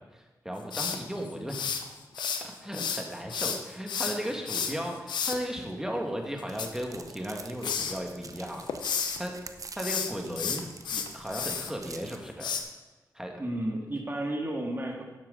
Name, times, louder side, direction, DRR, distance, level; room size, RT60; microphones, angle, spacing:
voice 1, 0.0-1.7 2.4-9.4 9.7-10.6 10.9-12.5 13.1-13.4, equal, 5° right, 1 dB, 2.1 m, -36 dB
sound 1, 0.7-2.4 2.7-5.4 6.4-7.3 7.6-8.0 8.4-9.2 9.7-11.7 12.4-12.6, left 7 dB, 85° left, 0.7 m, -32 dB
sound 2, 6.5-12.2, right 4 dB, 50° right, 0.8 m, -47 dB
voice 2, 13.4-15.0, right 1 dB, 30° right, 0 dB, 1.9 m, -32 dB
11.5 x 7.4 x 4.2 m, 1.1 s
supercardioid pair, 40°, 8 cm